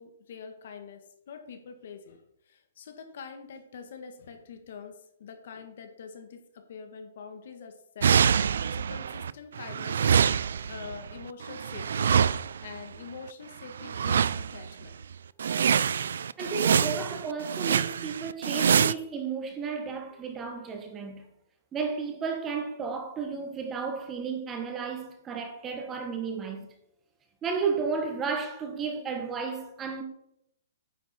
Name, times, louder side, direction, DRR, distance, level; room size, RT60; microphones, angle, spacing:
voice 1, 0.0-8.1 8.7-12.2 12.6-15.0 16.4-16.5, left 5 dB, 55° left, 1.5 m, -45 dB
sound 1, 8.0-9.3 9.6-12.8 13.8-14.7 15.0-15.1 15.4-18.9, right 7 dB, 80° right, 0.4 m, -25 dB
voice 2, 16.4-21.3 21.7-26.7 27.4-30.0, right 5 dB, 15° right, 1.2 m, -33 dB
9.3 x 7.4 x 4.3 m
hypercardioid pair, 165°, 0 cm